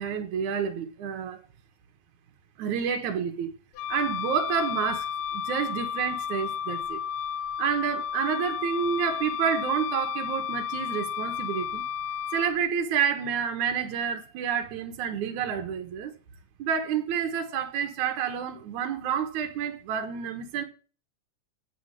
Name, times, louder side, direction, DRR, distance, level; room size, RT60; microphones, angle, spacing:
voice 1, 0.0-1.4 2.6-3.5 3.9-7.0 7.6-11.8 12.3-16.1 16.6-20.6, right 7 dB, 65° right, 2.6 m, -29 dB
Wind instrument woodwind instrument, 3.8-12.6, left 8 dB, 80° left, 2.5 m, -32 dB
8.3 x 6.4 x 7.5 m
omnidirectional pair, 3.8 m